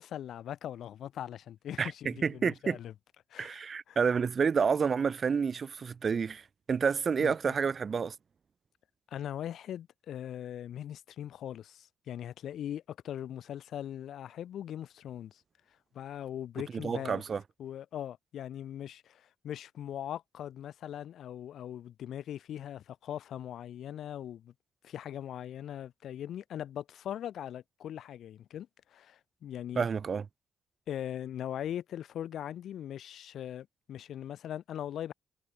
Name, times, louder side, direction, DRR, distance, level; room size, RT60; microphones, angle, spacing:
voice 1, 0.0-2.9 3.3-3.6 3.9-4.0 7.2-7.6 9.1-15.4 15.9-17.2 17.6-24.5 24.8-29.9 30.9-35.1, left 10 dB, 70° left, 1.8 m, -40 dB
voice 2, 1.8-2.8 3.4-6.4 6.7-8.1 16.8-17.4 29.8-30.2, right 6 dB, 45° right, 0.6 m, -29 dB
cardioid pair, 90°, 0 cm